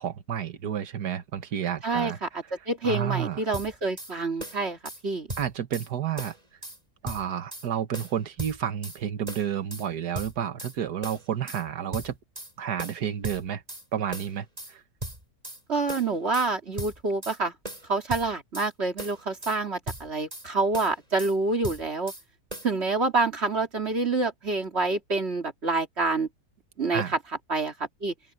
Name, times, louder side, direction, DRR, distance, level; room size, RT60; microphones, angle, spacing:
voice 1, 0.0-2.2 2.8-3.4 5.4-6.4 7.0-12.2 12.6-13.6 13.9-14.8 26.9-27.1, right 9 dB, 85° right, 1.8 m, -30 dB
voice 2, 1.8-2.3 2.7-4.8 5.0-5.3 15.7-17.5 17.9-22.1 22.6-26.3 26.8-27.0 27.5-27.7 28.0-28.1, right 3 dB, 40° right, 2.7 m, -27 dB
sound 1, 3.5-4.1 4.4-5.0 5.3-5.9 6.2-6.8 7.1-7.7 7.9-9.0 9.3-9.9 10.1-10.8 11.0-11.6 11.9-12.5 12.8-13.8 14.1-14.7 15.0-15.6 15.9-16.5 16.8-17.4 17.6-18.7 19.0-19.6 19.9-20.5 20.7-21.3 21.6-22.2 22.5-22.7, right 1 dB, 20° right, 6.2 m, -38 dB
open air
omnidirectional pair, 1.7 m